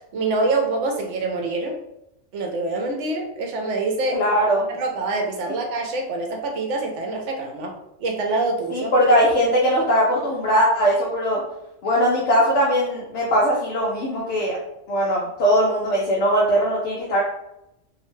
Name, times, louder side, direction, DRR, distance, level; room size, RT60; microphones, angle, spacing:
voice 1, 0.0-1.8 2.3-4.2 4.7-8.9, right 3 dB, 75° right, 2 dB, 0.9 m, -25 dB
voice 2, 4.1-4.7 8.7-11.4 11.8-14.6 14.9-17.2, equal, 70° left, -4 dB, 0.9 m, -20 dB
2.7 x 2.1 x 3.1 m, 0.85 s
omnidirectional pair, 1.3 m